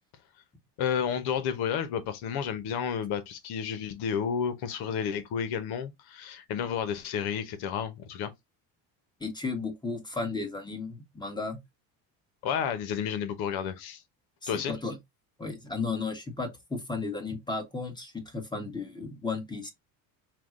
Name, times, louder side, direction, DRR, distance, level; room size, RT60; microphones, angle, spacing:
voice 1, 0.8-8.3 12.4-14.0 14.5-14.8, left 7 dB, 75° left, 1.0 m, -31 dB
voice 2, 9.2-11.6 14.4-15.0 15.4-19.7, left 4 dB, 10° left, 1.1 m, -34 dB
4.7 x 2.2 x 3.6 m
cardioid pair, 125°, 38 cm